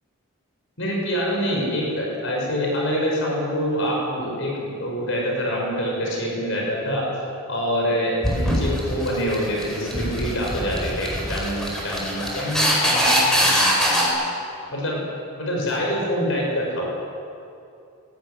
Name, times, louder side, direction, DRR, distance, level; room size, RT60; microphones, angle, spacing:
voice 1, 0.8-7.1 7.5-14.2 14.7-15.0 15.3-16.9, equal, 60° left, -2 dB, 6.2 m, -26 dB
sound 1, 8.2-14.0, equal, 5° left, 5.0 m, -22 dB
19.0 x 18.5 x 9.8 m, 2.6 s
head